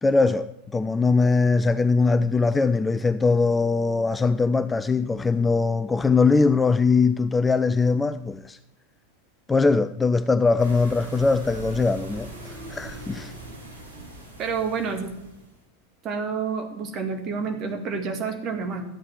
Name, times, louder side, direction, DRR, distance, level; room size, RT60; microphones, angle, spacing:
voice 1, 0.0-8.6 9.5-13.3, left 4 dB, 10° left, 0.4 m, -21 dB
sound 1, 10.6-15.5, right 2 dB, 75° right, 2.7 m, -40 dB
voice 2, 14.4-15.1 16.0-18.9, right 5 dB, 35° right, 1.8 m, -29 dB
12.5 x 8.4 x 4.6 m
figure-of-eight pair, 85°, 0 cm